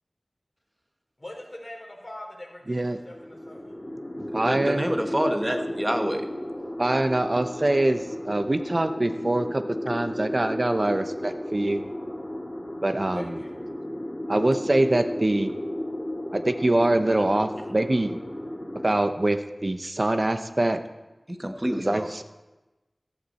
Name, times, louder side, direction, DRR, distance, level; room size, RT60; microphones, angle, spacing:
voice 1, 1.2-3.8 13.1-13.5, left 1 dB, 40° left, -1 dB, 3.9 m, -42 dB
voice 2, 2.7-3.0 4.3-4.9 6.8-8.0 8.2-11.8 12.8-13.3 14.3-15.5 16.3-18.2 18.8-20.8 21.8-22.2, right 1 dB, 50° right, 8 dB, 0.8 m, -24 dB
sound 1, 3.0-18.9, left 1 dB, 20° left, 3.7 m, -34 dB
voice 3, 4.4-6.3 21.3-22.1, equal, 20° right, 5 dB, 1.2 m, -27 dB
14.5 x 14.0 x 4.3 m, 1.1 s
wide cardioid pair, 55°, 0 cm